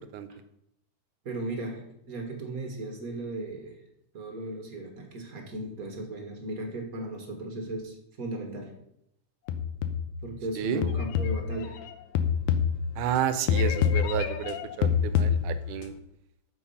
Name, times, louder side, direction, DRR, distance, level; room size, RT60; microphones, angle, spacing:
voice 1, 1.2-1.8 2.1-3.8 4.1-8.7 10.2-11.8, right 1 dB, 45° right, 3 dB, 1.2 m, -36 dB
sound 1, 9.5-10.2 10.8-13.2 13.5-15.8, left 7 dB, 90° left, 2.4 m, -27 dB
voice 2, 13.0-15.9, right 10 dB, 80° right, 12 dB, 2.2 m, -31 dB
13.0 x 5.4 x 5.6 m, 0.80 s
omnidirectional pair, 3.7 m